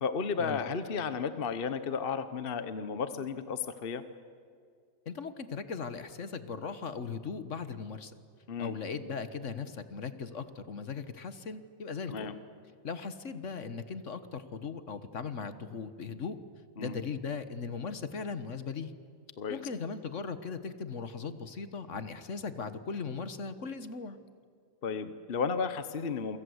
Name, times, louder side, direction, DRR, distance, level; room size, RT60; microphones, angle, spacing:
voice 1, 0.0-4.0 8.5-8.8 12.1-12.4 16.8-16.9 19.4-19.6 24.8-26.4, left 5 dB, 45° left, 11 dB, 1.2 m, -33 dB
voice 2, 5.0-8.1 8.6-12.3 12.8-16.4 16.8-18.9 19.5-24.2, left 5 dB, 65° left, 11 dB, 1.6 m, -38 dB
28.5 x 24.0 x 8.0 m, 2.2 s
omnidirectional pair, 1.4 m